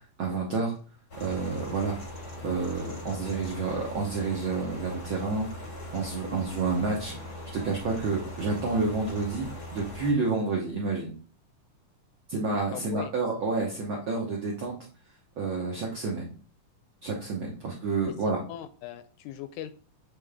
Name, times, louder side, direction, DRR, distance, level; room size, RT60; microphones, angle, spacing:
voice 1, 0.2-0.7 1.2-2.0 2.4-5.5 5.9-7.2 7.5-11.2 12.3-14.7 15.4-16.3 17.0-18.4, right 3 dB, 70° right, -2 dB, 1.1 m, -29 dB
sound 1, 1.1-10.1, left 1 dB, 45° left, 0.8 m, -40 dB
voice 2, 12.7-13.1 18.1-18.2 18.5-19.8, left 11 dB, 80° left, 11 dB, 1.9 m, -39 dB
7.5 x 3.8 x 3.5 m, 0.40 s
omnidirectional pair, 3.7 m